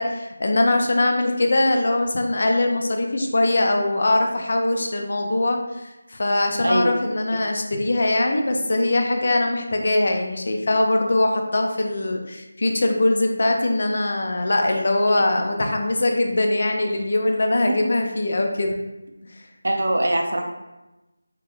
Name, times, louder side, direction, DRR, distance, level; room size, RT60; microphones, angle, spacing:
voice 1, 0.0-18.8, left 2 dB, 40° left, 3 dB, 0.3 m, -22 dB
voice 2, 19.6-20.4, right 1 dB, 55° right, 3 dB, 0.4 m, -22 dB
2.4 x 2.2 x 3.4 m, 1.0 s
figure-of-eight pair, 180°, 0 cm